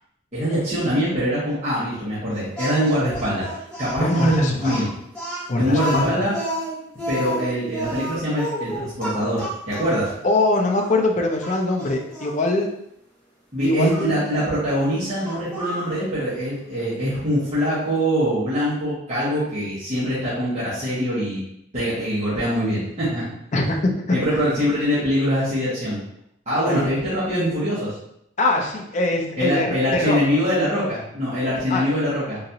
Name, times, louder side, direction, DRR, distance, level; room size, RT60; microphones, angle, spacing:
voice 1, 0.3-3.5 3.8-4.9 5.6-6.3 7.1-10.1 13.5-21.4 21.7-23.2 24.1-26.0 26.5-27.9 29.4-32.4, equal, 35° right, -13 dB, 1.1 m, -23 dB
Speech, 2.6-10.1 10.8-10.9 11.4-12.3 13.8-14.1 15.2-16.0, equal, 5° left, 0.9 m, -31 dB
voice 2, 4.0-4.8 5.5-6.3 10.2-12.7 13.6-14.2 23.5-24.2 24.4-24.5 26.7-26.9 28.4-30.2 31.7-31.9, left 2 dB, 35° left, 2 dB, 0.4 m, -23 dB
3.8 x 2.5 x 2.8 m, 0.78 s
head